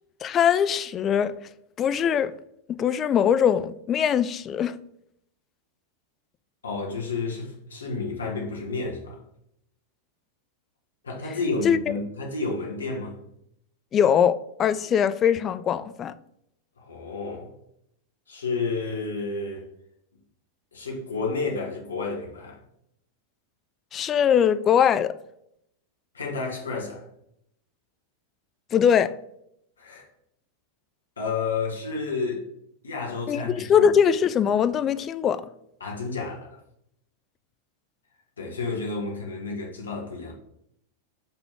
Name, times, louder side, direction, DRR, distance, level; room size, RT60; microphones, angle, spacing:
voice 1, 0.2-1.3 1.8-2.3 2.8-4.8 11.6-11.8 13.9-16.1 23.9-25.2 28.7-29.1 33.3-35.4, left 8 dB, 25° left, 0.4 m, -21 dB
voice 2, 6.6-9.2 11.0-13.2 16.8-17.5 18.3-19.6 20.7-22.6 26.1-27.0 29.8-30.1 31.2-32.4 32.8-33.9 35.8-36.6 38.4-40.3, left 4 dB, 70° left, 1.6 m, -31 dB
5.6 x 3.5 x 5.8 m
figure-of-eight pair, 90°, 0 cm